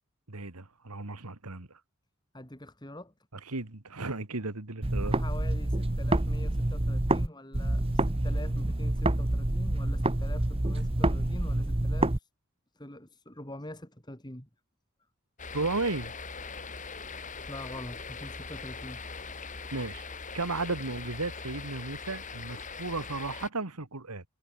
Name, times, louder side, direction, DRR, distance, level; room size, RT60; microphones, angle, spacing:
voice 1, 0.3-1.7 3.5-5.2 15.5-16.1 19.7-20.0 20.3-24.2, right 3 dB, 90° right, 2.1 m, -34 dB
voice 2, 2.3-3.1 5.1-12.3 12.7-14.5 17.5-19.0, left 1 dB, 20° left, 4.0 m, -44 dB
sound 1, 4.8-7.3 7.5-12.2, right 1 dB, 25° right, 1.0 m, -27 dB
sound 2, 15.4-23.5, left 4 dB, 35° left, 3.0 m, -41 dB
head